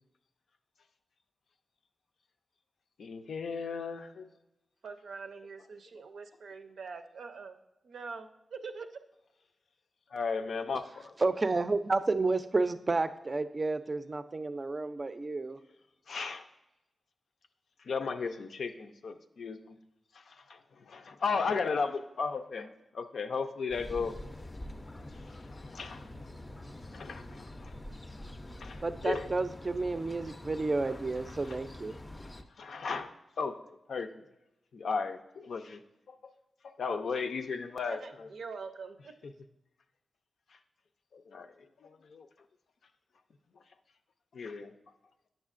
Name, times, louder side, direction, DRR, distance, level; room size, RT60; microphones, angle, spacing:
voice 1, 3.0-4.3 10.1-11.1 16.1-16.4 17.9-19.8 20.1-24.2 25.5-26.1 26.9-27.7 28.6-29.3 31.5-31.6 32.6-33.1 33.4-34.2 34.7-35.8 36.1-36.2 36.8-38.3 41.1-41.5 41.8-42.3 44.3-44.7, left 5 dB, 80° left, 7 dB, 0.5 m, -35 dB
voice 2, 4.8-7.6 7.8-9.0 37.9-39.1, right 4 dB, 85° right, 6 dB, 0.5 m, -44 dB
voice 3, 11.2-15.6 28.8-32.0, right 3 dB, 35° right, 11 dB, 0.4 m, -31 dB
sound 1, 23.7-32.4, left 1 dB, 25° left, 0.5 m, -45 dB
8.8 x 6.4 x 2.5 m, 0.92 s
cardioid pair, 75°, 0 cm